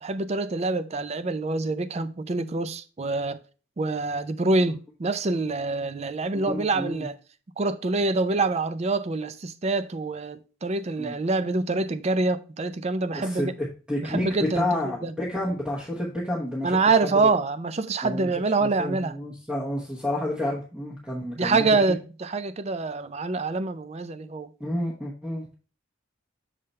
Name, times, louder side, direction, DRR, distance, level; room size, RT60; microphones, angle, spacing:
voice 1, 0.0-3.4 3.8-7.1 7.6-13.5 14.0-14.7 15.0-15.1 16.6-19.2 21.4-24.5, right 3 dB, 30° right, 0.4 m, -26 dB
voice 2, 6.3-7.1 11.0-11.1 13.1-14.3 14.5-16.9 17.2-17.3 18.0-21.7 24.6-25.4, left 1 dB, 5° right, 1.1 m, -30 dB
6.6 x 3.8 x 4.2 m
head